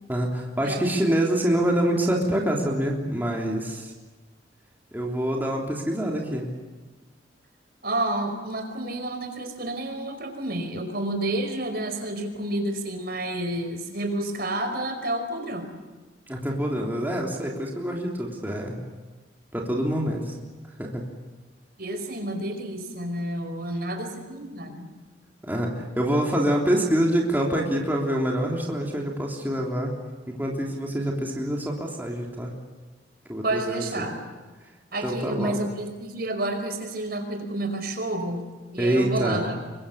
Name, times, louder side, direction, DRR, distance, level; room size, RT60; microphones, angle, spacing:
voice 1, 0.1-3.9 4.9-6.5 16.3-18.8 19.5-20.4 20.8-21.0 25.4-29.9 30.3-32.5 33.3-34.1 34.6-34.7 35.0-35.6 38.8-39.5, right 1 dB, 10° right, -1 dB, 3.3 m, -26 dB
voice 2, 7.8-15.7 21.8-24.9 33.4-34.2 34.9-38.4 38.7-39.6, right 1 dB, 55° right, 5 dB, 5.2 m, -30 dB
28.0 x 24.0 x 8.6 m, 1.3 s
head